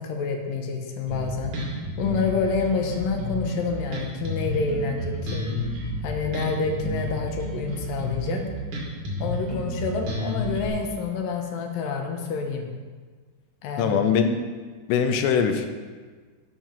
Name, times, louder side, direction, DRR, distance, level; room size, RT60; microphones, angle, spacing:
voice 1, 0.0-1.6 2.0-5.5 6.0-8.4 9.2-12.7 13.6-14.0, left 5 dB, 70° left, 3 dB, 2.4 m, -28 dB
Bass guitar, 1.1-10.7, equal, 50° right, 3.6 m, -31 dB
voice 2, 13.8-14.4 14.9-15.7, left 7 dB, 85° left, 7 dB, 2.9 m, -22 dB
12.5 x 7.5 x 5.6 m, 1.4 s
omnidirectional pair, 5.1 m